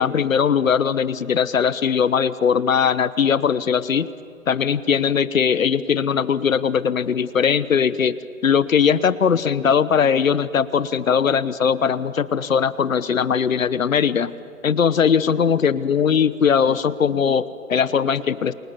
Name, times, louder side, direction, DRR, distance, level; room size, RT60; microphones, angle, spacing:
voice 1, 0.0-4.1 4.5-8.2 8.4-14.3 14.6-18.5, left 7 dB, 70° left, 17 dB, 1.0 m, -20 dB
28.0 x 20.0 x 7.0 m, 2.5 s
figure-of-eight pair, 135°, 42 cm